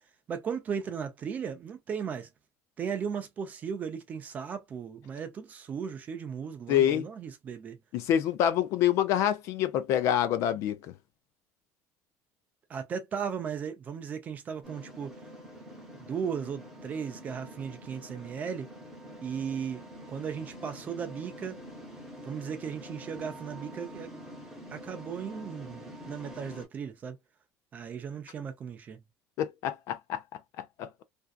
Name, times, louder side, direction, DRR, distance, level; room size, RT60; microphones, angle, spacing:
voice 1, 0.3-2.3 2.8-7.8 12.7-15.1 15.9-18.7 19.2-19.8 20.1-21.6 22.2-24.2 24.7-27.2 27.7-29.0, right 7 dB, 25° right, 0.4 m, -36 dB
voice 2, 6.7-7.1 7.9-10.9 29.4-30.2 30.8-30.9, left 10 dB, 50° left, 0.4 m, -26 dB
sound 1, 14.6-26.7, equal, 5° right, 0.9 m, -46 dB
2.6 x 2.2 x 2.2 m
cardioid pair, 170°, 6 cm